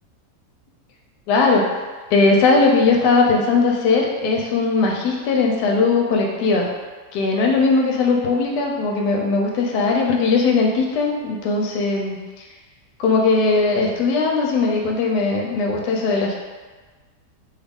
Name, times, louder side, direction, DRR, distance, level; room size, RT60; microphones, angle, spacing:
voice 1, 1.3-1.7 2.1-6.7 7.1-12.2 13.0-16.3, left 3 dB, 80° left, 0 dB, 1.1 m, -19 dB
3.1 x 2.3 x 3.5 m, 1.4 s
omnidirectional pair, 1.8 m